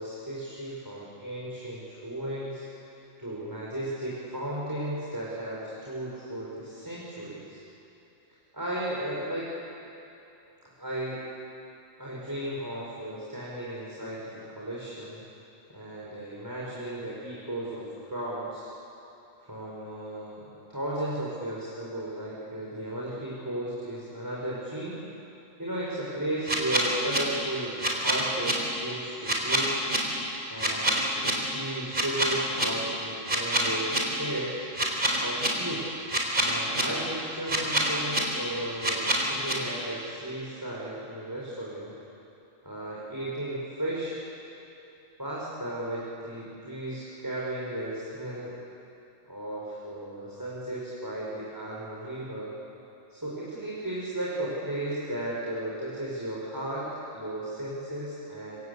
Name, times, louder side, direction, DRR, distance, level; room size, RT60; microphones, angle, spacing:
voice 1, 0.0-2.9 3.2-7.6 8.5-9.5 10.6-11.3 12.0-15.2 15.7-18.7 19.5-25.0 25.6-30.0 30.5-34.7 35.2-35.9 36.4-42.0 42.6-44.2 45.2-48.5 49.3-52.5 53.1-56.8 57.1-58.6, right 1 dB, 15° right, -6 dB, 5.1 m, -35 dB
sound 1, 26.5-27.2 27.8-28.5 29.2-30.0 30.6-31.3 31.9-32.7 33.3-34.0 34.8-35.5 36.1-36.8 37.5-38.2 38.8-39.5, right 1 dB, 40° right, 4.3 m, -25 dB
27.5 x 25.5 x 8.3 m, 2.9 s
omnidirectional pair, 1.4 m